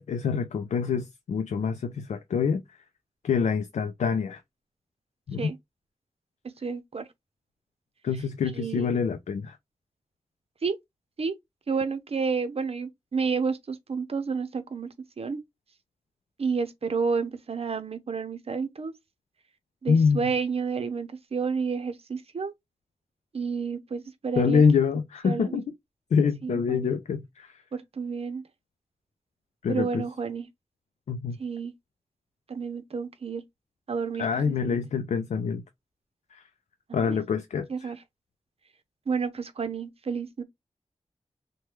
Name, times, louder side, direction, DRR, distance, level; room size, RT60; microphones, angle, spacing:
voice 1, 0.0-2.8 3.2-4.4 5.3-5.5 8.0-9.6 19.9-20.3 24.4-25.7 26.1-27.6 29.6-30.0 31.1-31.4 34.2-35.6 36.3-36.4 36.9-37.9, left 6 dB, 90° left, 0.4 m, -26 dB
voice 2, 6.6-7.0 8.6-9.0 10.6-10.8 11.2-11.3 11.7-14.9 15.2-15.4 16.4-18.9 19.8-22.5 23.3-24.6 25.2-25.6 26.4-26.9 27.7-28.4 29.7-30.5 31.4-31.7 32.5-33.4 33.9-34.8 37.1-37.2 37.7-38.0 39.1-40.4, right 5 dB, 60° right, 0.7 m, -30 dB
3.1 x 2.2 x 3.0 m
cardioid pair, 50°, 12 cm